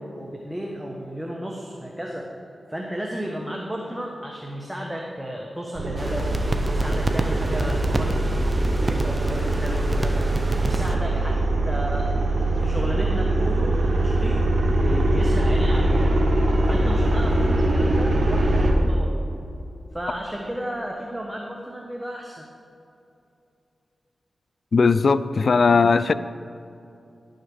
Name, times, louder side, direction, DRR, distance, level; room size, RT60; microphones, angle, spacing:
voice 1, 0.0-2.3 2.7-16.1 16.7-19.1 19.9-22.4 25.7-25.8, equal, 10° right, 0 dB, 1.2 m, -33 dB
sound 1, 5.7-18.7, right 1 dB, 60° right, 1.6 m, -22 dB
sound 2, 6.0-11.0, right 1 dB, 30° right, 0.8 m, -29 dB
voice 2, 24.7-26.1, left 4 dB, 70° left, 15 dB, 0.3 m, -18 dB
11.5 x 6.5 x 6.3 m, 2.7 s
cardioid pair, 50°, 0 cm